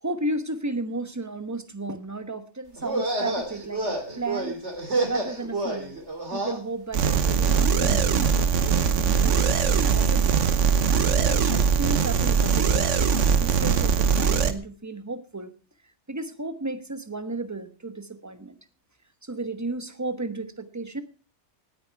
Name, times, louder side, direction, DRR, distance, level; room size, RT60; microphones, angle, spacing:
voice 1, 0.0-4.6 5.1-6.0 6.3-10.6 11.2-15.5 16.1-18.6 19.2-21.0, right 2 dB, 15° right, 10 dB, 1.1 m, -34 dB
sound 1, 2.8-6.6, right 2 dB, 70° right, 3.3 m, -29 dB
sound 2, 6.9-14.5, right 6 dB, 90° right, 1.3 m, -21 dB
18.0 x 9.4 x 4.7 m, 0.36 s
omnidirectional pair, 1.2 m